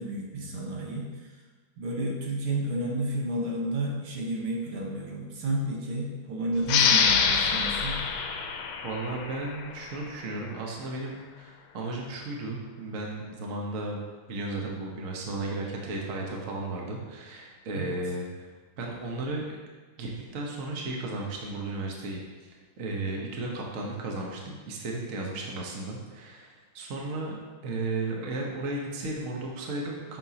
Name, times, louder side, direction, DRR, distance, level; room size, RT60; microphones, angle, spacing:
voice 1, 0.0-1.4 1.8-8.0 17.7-18.0, right 1 dB, 80° right, -1 dB, 2.0 m, -31 dB
sound 1, 6.6-9.9, left 6 dB, 75° left, 1.4 m, -25 dB
voice 2, 8.8-14.0 14.3-18.5 18.8-19.6 20.0-22.2 22.8-30.2, right 2 dB, 45° right, -1 dB, 1.2 m, -34 dB
9.0 x 6.1 x 2.9 m, 1.4 s
omnidirectional pair, 2.3 m